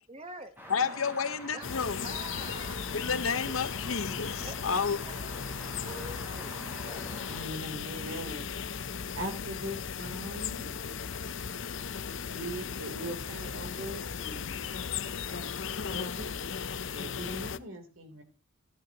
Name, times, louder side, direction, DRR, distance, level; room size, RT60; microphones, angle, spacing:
voice 1, 0.1-1.0 1.5-1.7 2.0-2.7 4.4-5.3 5.8-7.4, right 2 dB, 30° right, 1.1 m, -46 dB
sound 1, 0.6-7.4, equal, 10° right, 3.7 m, -45 dB
voice 2, 0.7-2.1 2.9-5.0, left 5 dB, 85° left, 1.0 m, -31 dB
sound 2, 1.6-17.6, left 6 dB, 65° left, 0.6 m, -37 dB
voice 3, 7.2-8.5 9.1-10.7 12.0-14.7 15.2-16.5 16.9-18.2, right 1 dB, 70° right, 3.2 m, -41 dB
14.0 x 12.0 x 2.9 m
head